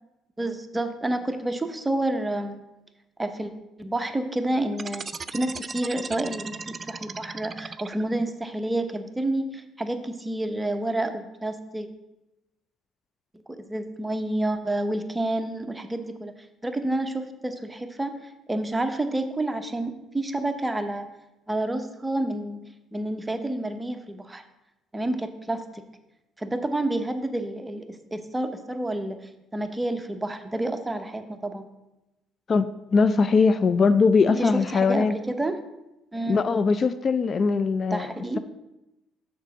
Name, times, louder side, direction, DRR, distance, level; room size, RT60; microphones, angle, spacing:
voice 1, 0.4-2.6 3.2-3.5 3.8-5.0 5.3-11.9 13.5-16.3 16.6-21.1 21.5-22.6 22.9-24.4 24.9-25.8 26.4-29.2 29.5-31.6 34.3-35.6 36.1-36.4 37.9-38.4, right 1 dB, 15° right, 7 dB, 0.9 m, -29 dB
sound 1, 4.7-8.3, right 5 dB, 40° right, 0.4 m, -37 dB
voice 2, 32.5-35.1 36.3-38.1, left 4 dB, 45° left, 12 dB, 0.4 m, -21 dB
6.6 x 4.6 x 6.0 m, 0.96 s
supercardioid pair, 65°, 0 cm